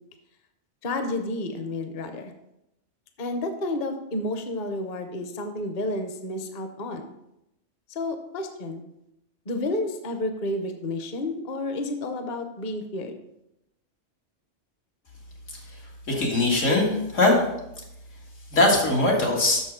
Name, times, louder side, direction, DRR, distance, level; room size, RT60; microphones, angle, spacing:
voice 1, 0.8-2.3 3.2-7.1 7.9-8.8 9.5-13.2, left 2 dB, 45° left, 7 dB, 0.8 m, -30 dB
voice 2, 16.1-17.4 18.5-19.6, left 2 dB, 85° left, -2 dB, 2.2 m, -21 dB
6.6 x 6.4 x 5.1 m, 0.86 s
omnidirectional pair, 1.3 m